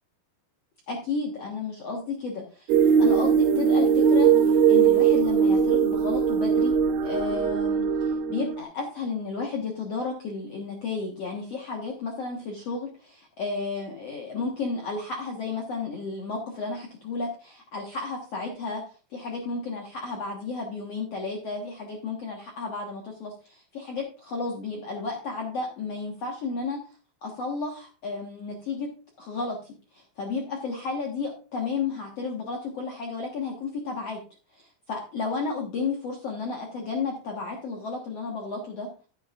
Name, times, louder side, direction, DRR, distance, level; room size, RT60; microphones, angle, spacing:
voice 1, 0.9-2.7 3.0-6.8 7.0-26.9 27.2-28.9 29.2-34.2 34.5-38.9, left 4 dB, 80° left, 0 dB, 1.4 m, -33 dB
sound 1, 2.7-8.6, right 7 dB, 75° right, 2.6 m, -20 dB
13.5 x 8.7 x 2.5 m, 0.37 s
omnidirectional pair, 5.1 m